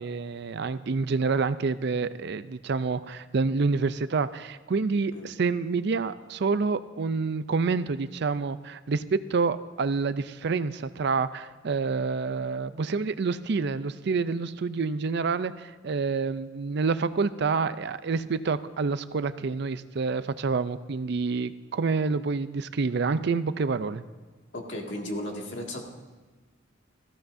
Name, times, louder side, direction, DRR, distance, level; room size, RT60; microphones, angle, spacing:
voice 1, 0.0-24.0, right 4 dB, 60° right, 14 dB, 0.5 m, -28 dB
voice 2, 24.5-25.8, left 1 dB, 65° left, 0 dB, 2.1 m, -35 dB
18.0 x 15.0 x 2.7 m, 1.3 s
head